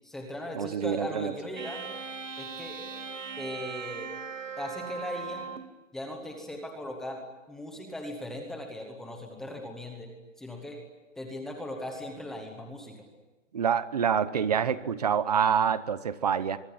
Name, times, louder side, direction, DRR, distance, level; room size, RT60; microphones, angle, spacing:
voice 1, 0.0-1.8 2.4-2.8 3.4-4.1 4.6-5.5 5.9-10.8 11.2-13.0, left 1 dB, ahead, 2 dB, 1.0 m, -38 dB
voice 2, 0.5-1.3 13.5-16.6, right 8 dB, 30° right, 15 dB, 1.0 m, -26 dB
sound 1, 1.6-5.8, right 6 dB, 80° right, 2.7 m, -39 dB
24.0 x 23.5 x 9.5 m, 1.1 s
hypercardioid pair, 180°, 37 cm